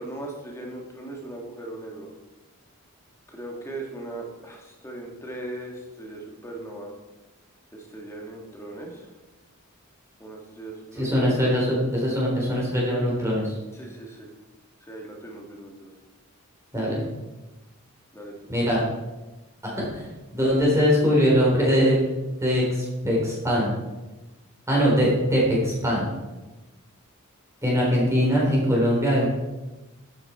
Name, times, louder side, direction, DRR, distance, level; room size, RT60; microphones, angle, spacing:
voice 1, 0.0-2.1 3.3-6.9 7.7-9.1 10.2-11.6 13.7-14.3 14.9-15.9 18.1-18.4, right 2 dB, 10° left, 0 dB, 2.2 m, -38 dB
voice 2, 11.0-13.5 16.7-17.1 18.5-18.8 19.6-20.1 20.3-22.0 22.4-23.7 24.7-26.1 27.6-29.3, equal, 15° right, -5 dB, 3.8 m, -22 dB
12.0 x 9.4 x 4.5 m, 1.1 s
head